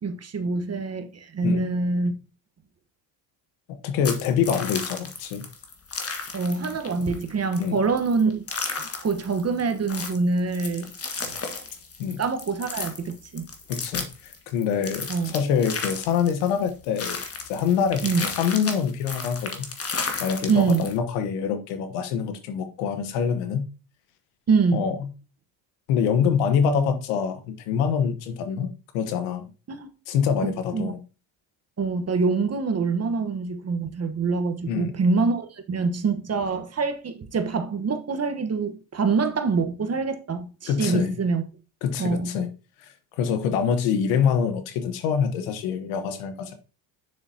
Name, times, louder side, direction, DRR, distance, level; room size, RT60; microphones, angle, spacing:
voice 1, 0.0-2.1 6.3-8.5 8.8-10.9 11.2-11.4 12.2-13.4 15.1-15.3 18.0-18.2 20.5-20.9 24.5-24.9 29.7-29.9 30.4-31.0 31.8-41.4 42.0-42.4, right 4 dB, 30° right, 1.2 m, -25 dB
voice 2, 3.8-5.4 7.6-7.8 12.0-12.2 13.7-17.2 17.5-19.7 20.2-23.7 24.7-24.9 25.9-28.7 28.9-29.5 30.1-31.0 34.7-34.9 40.7-41.1 41.8-42.5 43.2-46.5, left 7 dB, 85° left, 1.3 m, -25 dB
sound 1, 4.0-21.0, left 4 dB, 30° left, 1.6 m, -34 dB
6.7 x 6.7 x 2.8 m
supercardioid pair, 85°, 49 cm